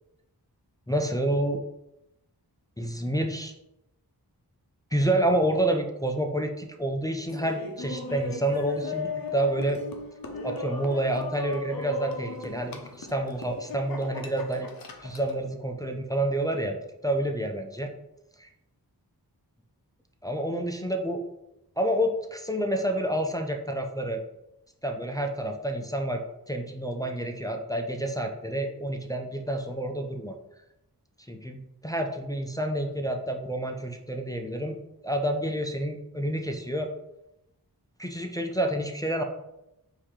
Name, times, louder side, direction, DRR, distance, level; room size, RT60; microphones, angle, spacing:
voice 1, 0.9-1.6 2.8-3.5 4.9-9.8 10.4-14.7 15.0-16.8 17.0-17.9 18.4-18.5 20.2-21.2 21.8-24.2 24.8-30.4 31.3-34.8 35.0-36.9 38.0-39.2, right 1 dB, 10° left, 3 dB, 0.4 m, -29 dB
Laughter, 7.3-15.4, left 3 dB, 60° left, 0.7 m, -37 dB
4.6 x 2.7 x 3.6 m, 0.89 s
wide cardioid pair, 65°, 39 cm